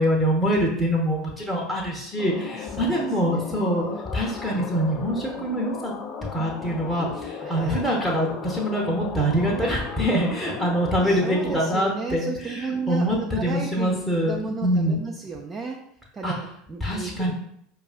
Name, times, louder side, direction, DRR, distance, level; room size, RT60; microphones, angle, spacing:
voice 1, 0.0-3.8 4.1-5.9 6.3-14.3 14.6-15.0 16.2-16.3 16.8-17.3, equal, ahead, -2 dB, 0.7 m, -24 dB
sound 1, 2.2-11.8, left 6 dB, 40° left, 0.4 m, -36 dB
voice 2, 2.5-4.0 7.4-7.9 11.0-15.8 16.1-17.3, right 4 dB, 25° right, 1 dB, 0.4 m, -34 dB
4.7 x 2.3 x 2.4 m, 0.73 s
figure-of-eight pair, 75°, 0 cm